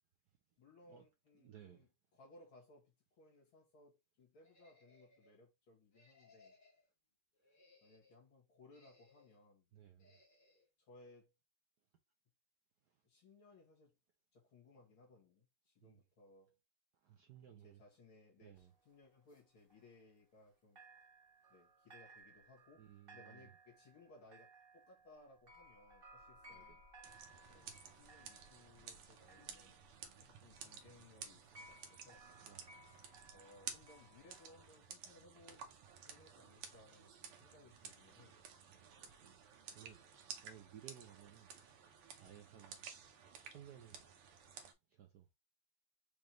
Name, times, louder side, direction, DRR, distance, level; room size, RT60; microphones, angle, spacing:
voice 1, 0.6-1.9 2.2-6.6 7.8-9.6 10.9-11.3 13.0-13.9 14.3-16.6 17.6-20.8 21.5-22.8 23.1-26.8 27.5-29.8 30.2-32.3 33.3-35.6 36.0-38.4, left 2 dB, 70° left, 2.6 m, -64 dB
voice 2, 1.3-1.9 9.7-10.2 12.8-13.0 15.8-16.0 17.0-17.8 18.4-18.7 22.8-23.5 26.2-26.8 32.4-33.1 38.7-41.5 42.2-42.9 43.4-44.0 44.9-45.3, right 10 dB, 65° right, 1.1 m, -59 dB
sound 1, 4.4-5.4 5.9-6.9 7.3-8.2 8.7-9.5 10.0-10.7, left 3 dB, 55° left, 2.3 m, -68 dB
sound 2, 18.6-20.5 20.8-34.7, right 1 dB, 30° right, 1.3 m, -62 dB
sound 3, 27.0-44.7, right 7 dB, 90° right, 1.8 m, -54 dB
5.2 x 3.5 x 3.0 m
omnidirectional pair, 2.4 m